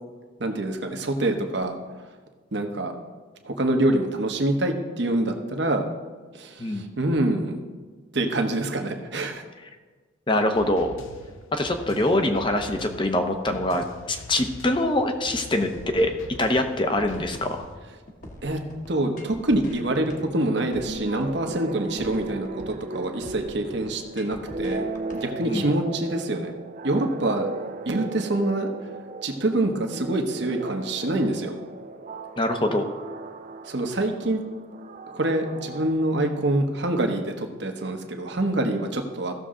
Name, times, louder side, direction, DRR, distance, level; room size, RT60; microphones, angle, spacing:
voice 1, 0.4-1.7 2.5-2.9 3.4-5.8 6.3-7.6 8.1-9.4 18.4-18.6 18.9-24.8 25.1-26.5 26.8-27.5 27.9-28.7 29.2-31.5 33.7-34.4 35.1-39.3, right 1 dB, 60° right, 4 dB, 1.1 m, -25 dB
voice 2, 10.3-10.9 11.5-16.1 16.4-17.7 25.4-25.6 32.4-32.9, left 1 dB, 25° left, 6 dB, 0.8 m, -24 dB
sound 1, 10.6-17.8, left 3 dB, 85° left, 0.8 m, -44 dB
sound 2, 15.7-25.7, left 1 dB, 40° left, 1.3 m, -44 dB
sound 3, 20.5-36.9, right 3 dB, 40° right, 0.4 m, -37 dB
15.5 x 6.7 x 3.8 m, 1.4 s
head